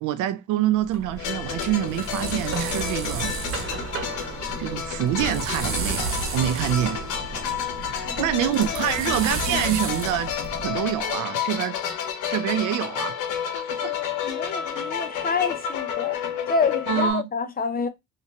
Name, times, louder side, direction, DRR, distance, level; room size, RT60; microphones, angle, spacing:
voice 1, 0.0-3.3 4.6-7.0 7.8-10.3 10.6-11.8 12.3-13.2 13.5-13.9 16.9-17.2, right 12 dB, 85° right, 0.5 m, -26 dB
sound 1, 0.8-11.1, right 4 dB, 45° right, 1.1 m, -32 dB
sound 2, 1.2-17.1, left 8 dB, 85° left, 0.8 m, -30 dB
voice 2, 8.1-9.2 9.5-9.6 10.9-11.0 14.2-16.2 16.5-17.9, left 5 dB, 30° left, 0.6 m, -28 dB
3.2 x 3.0 x 2.8 m
cardioid pair, 90°, 30 cm